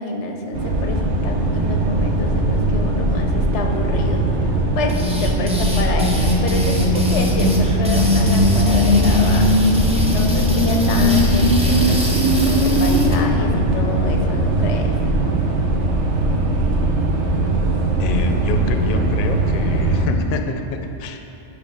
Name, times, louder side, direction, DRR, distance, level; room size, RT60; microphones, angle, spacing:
voice 1, 0.0-4.2 4.8-9.5 10.0-14.9, left 3 dB, 90° left, 3 dB, 1.0 m, -27 dB
sound 1, 0.5-20.1, right 2 dB, 90° right, 1.2 m, -20 dB
sound 2, 4.9-13.2, left 2 dB, 5° right, 0.5 m, -20 dB
voice 2, 18.0-21.2, left 4 dB, 60° left, 6 dB, 0.6 m, -27 dB
10.0 x 3.4 x 4.9 m, 2.8 s
omnidirectional pair, 1.2 m